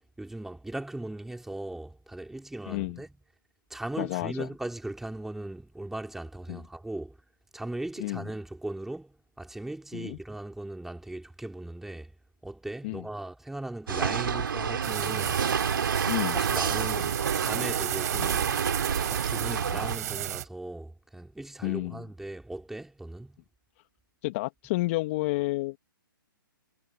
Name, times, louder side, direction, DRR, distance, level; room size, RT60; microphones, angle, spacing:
voice 1, 0.2-3.1 3.7-7.1 7.5-12.1 12.4-15.4 16.3-17.2 17.4-18.5 19.0-23.4, right 1 dB, 5° right, 3.9 m, -38 dB
voice 2, 2.7-3.0 4.0-4.5 6.5-6.6 8.0-8.3 9.9-10.2 12.8-13.1 14.3-14.4 16.1-16.4 21.6-22.1 24.2-25.8, left 21 dB, 35° left, 2.3 m, -31 dB
sound 1, 13.9-20.0, right 7 dB, 70° right, 3.3 m, -29 dB
sound 2, 14.8-20.4, right 13 dB, 50° right, 4.2 m, -34 dB
hypercardioid pair, 140°, 12 cm